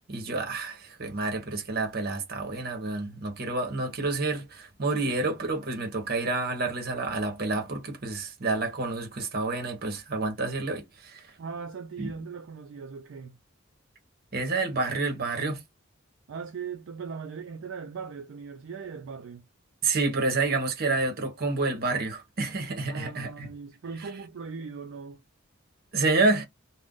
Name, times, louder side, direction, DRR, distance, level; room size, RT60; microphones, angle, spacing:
voice 1, 0.1-11.3 12.0-12.1 14.3-15.6 19.8-23.5 25.9-26.5, right 3 dB, 50° right, 0.9 m, -29 dB
voice 2, 11.4-13.4 16.3-19.4 22.9-25.2, right 5 dB, 65° right, 0.4 m, -39 dB
2.5 x 2.1 x 3.6 m
head